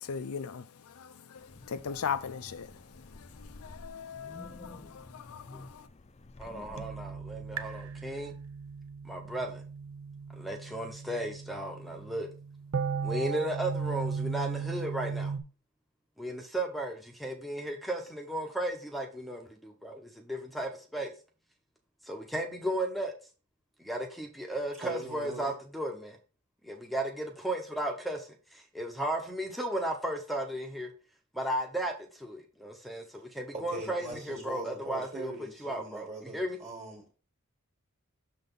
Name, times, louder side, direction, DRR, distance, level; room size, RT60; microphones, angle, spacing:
voice 1, 0.0-5.9, left 6 dB, 80° left, 0.5 m, -39 dB
Wind, 1.3-6.9, left 2 dB, 30° left, 0.5 m, -50 dB
voice 2, 6.4-8.3 9.0-9.6 10.4-12.3 13.0-15.3 16.2-21.1 22.0-23.1 23.8-26.2 26.6-30.9 31.3-35.3 35.6-36.1 36.3-36.6, right 1 dB, ahead, 0.8 m, -35 dB
sound 1, 6.8-15.4, right 5 dB, 70° right, 0.6 m, -36 dB
voice 3, 24.8-25.5 33.5-37.1, right 3 dB, 30° right, 1.9 m, -41 dB
6.7 x 3.9 x 5.3 m
head